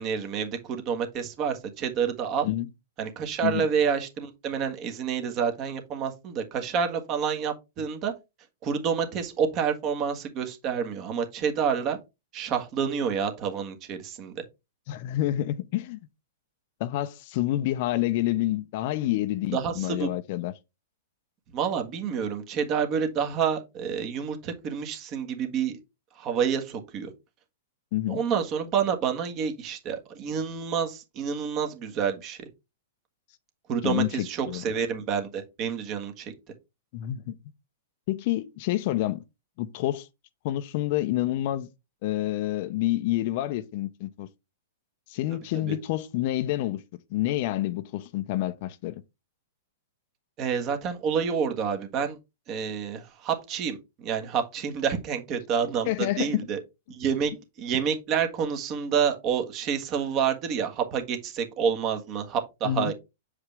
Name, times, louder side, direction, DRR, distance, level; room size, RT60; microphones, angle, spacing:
voice 1, 0.0-2.5 3.0-8.1 8.6-12.0 12.3-14.4 19.5-20.1 21.5-25.8 26.2-27.1 28.1-32.5 33.7-36.3 45.6-45.7 50.4-52.2 52.5-56.6 56.9-57.3 57.6-62.9, right 7 dB, 35° right, 1.5 m, -28 dB
voice 2, 14.9-16.0 16.8-20.5 27.9-28.2 33.8-34.6 36.9-37.4 38.1-39.2 39.6-40.1 40.4-41.7 42.0-44.3 45.1-46.8 47.1-49.0 55.9-56.5 62.6-62.9, left 14 dB, 50° left, 0.7 m, -28 dB
7.2 x 4.9 x 3.4 m
hypercardioid pair, 130°, 0 cm